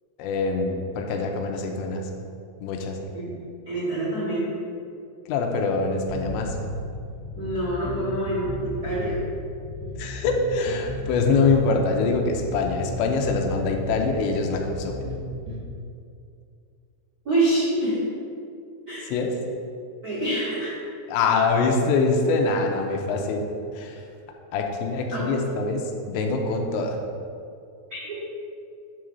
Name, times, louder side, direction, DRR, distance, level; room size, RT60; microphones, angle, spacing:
voice 1, 0.2-2.1 2.6-3.0 5.3-6.6 10.0-15.0 19.1-19.4 21.1-23.5 23.7-24.0 24.5-27.0, left 4 dB, 90° left, 3 dB, 3.0 m, -24 dB
voice 2, 3.6-4.5 7.3-9.2 17.2-18.0 18.9-19.0 20.0-20.8 25.1-25.3 27.9-28.2, right 1 dB, 35° right, -10 dB, 1.4 m, -26 dB
sound 1, 6.1-15.6, left 1 dB, 65° right, 2.2 m, -35 dB
8.8 x 3.9 x 6.3 m, 2.4 s
omnidirectional pair, 5.1 m